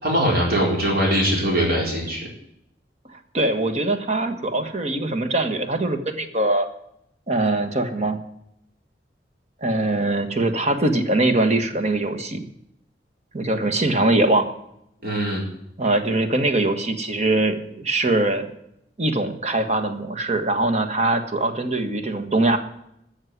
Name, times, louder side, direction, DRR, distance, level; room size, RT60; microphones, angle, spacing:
voice 1, 0.0-2.3 15.0-15.4, equal, 60° right, -2 dB, 4.3 m, -21 dB
voice 2, 3.3-6.7 7.3-8.2 9.6-12.4 13.3-14.5 15.8-18.5 19.0-22.6, right 2 dB, 40° right, 8 dB, 1.4 m, -22 dB
14.0 x 6.6 x 9.5 m, 0.77 s
head